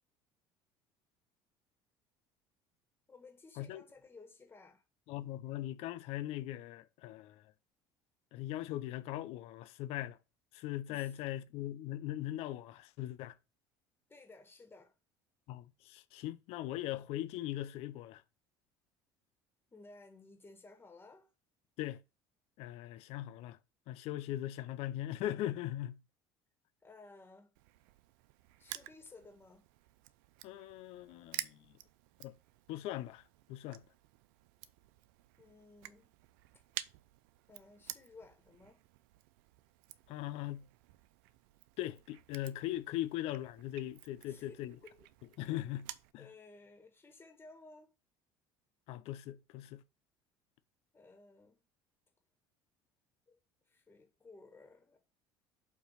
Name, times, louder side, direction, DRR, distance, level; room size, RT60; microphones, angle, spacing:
voice 1, 3.1-4.8 10.9-11.2 14.1-14.9 19.7-21.3 26.8-27.5 28.6-29.7 35.4-36.2 37.5-38.8 44.3-45.1 46.2-47.9 50.9-51.7 53.3-55.0, left 3 dB, 20° left, 1.8 m, -57 dB
voice 2, 5.1-7.4 8.3-10.2 10.5-13.3 15.5-18.2 21.8-22.0 22.6-23.6 23.9-26.0 30.4-31.7 32.2-32.3 32.7-33.2 33.5-33.8 40.1-40.7 41.8-44.7 45.4-46.3 48.9-49.8, left 14 dB, 70° left, 0.7 m, -40 dB
Crushing, 27.5-46.1, right 15 dB, 85° right, 0.5 m, -51 dB
7.2 x 3.0 x 5.7 m
supercardioid pair, 100°, 11 cm